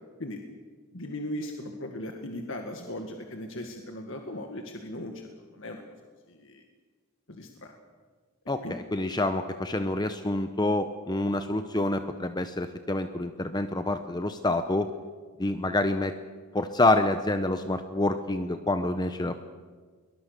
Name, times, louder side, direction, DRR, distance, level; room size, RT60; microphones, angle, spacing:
voice 1, 0.9-5.3 5.5-5.8 6.3-6.6 7.3-7.7 8.6-8.8, left 1 dB, 60° left, 3 dB, 1.9 m, -38 dB
voice 2, 8.5-14.9 15.4-16.2 16.5-19.4, left 2 dB, 20° left, 9 dB, 0.8 m, -27 dB
22.5 x 20.0 x 6.8 m, 1.5 s
head